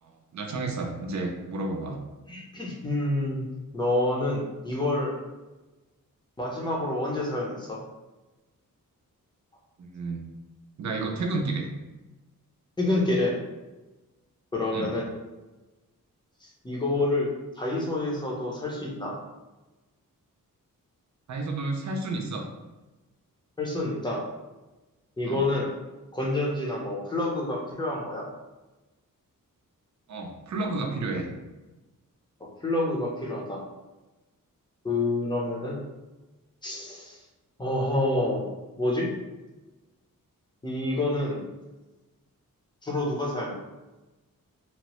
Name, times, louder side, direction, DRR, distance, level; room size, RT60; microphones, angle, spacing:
voice 1, 0.0-2.0 9.8-10.2 10.8-11.7 14.7-14.9 21.3-22.5 25.2-25.4 30.1-31.3, right 2 dB, 55° right, 2 dB, 0.5 m, -31 dB
voice 2, 2.3-3.5 3.7-5.1 6.4-7.8 12.8-13.4 14.5-15.1 16.4-17.3 17.6-19.1 23.6-24.2 25.2-25.7 26.1-28.3 32.6-33.6 34.8-35.8 36.6-37.2 37.6-38.5 38.8-39.1 40.6-41.4 42.8-43.5, left 2 dB, 15° left, -3 dB, 0.6 m, -28 dB
2.9 x 2.1 x 2.9 m, 1.1 s
wide cardioid pair, 160°, 34 cm